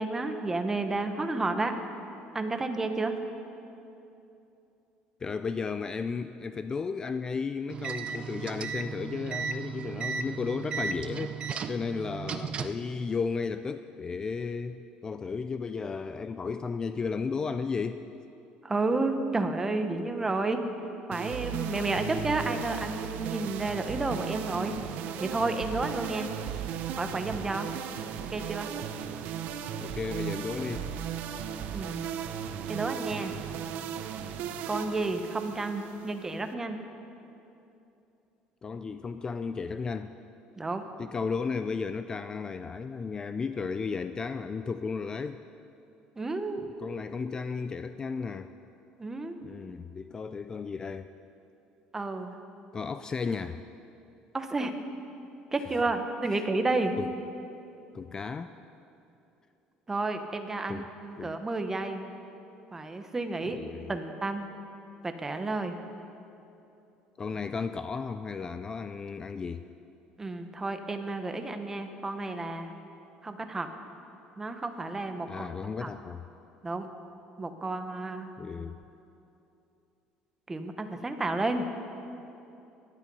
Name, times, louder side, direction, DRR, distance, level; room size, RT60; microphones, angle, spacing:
voice 1, 0.0-1.7 2.3-3.2 18.6-20.6 21.1-24.8 25.2-26.3 27.0-27.7 28.3-28.7 31.7-32.0 32.7-33.3 34.7-36.8 40.6-40.9 46.2-46.6 49.0-49.4 51.9-52.3 54.3-54.8 55.5-57.0 59.9-62.0 62.7-63.6 63.9-64.5 65.0-65.8 70.2-72.7 73.2-73.7 74.4-75.5 75.8-75.9 76.6-76.9 77.4-78.3 80.5-81.7, right 2 dB, 15° right, 6 dB, 1.0 m, -31 dB
voice 2, 5.2-11.4 11.7-18.0 29.8-30.9 38.6-40.1 41.0-45.4 46.8-48.5 49.4-51.1 52.7-53.6 56.3-56.4 57.0-57.1 57.9-58.5 60.7-60.8 61.2-61.3 63.5-63.9 67.2-69.7 75.3-76.3 78.4-78.8, left 5 dB, 25° left, 10 dB, 0.4 m, -34 dB
sound 1, 7.7-12.9, right 6 dB, 35° right, 0.7 m, -35 dB
sound 2, 21.1-36.5, right 8 dB, 70° right, 0.8 m, -36 dB
17.5 x 11.5 x 5.4 m, 2.8 s
cardioid pair, 135°, 3 cm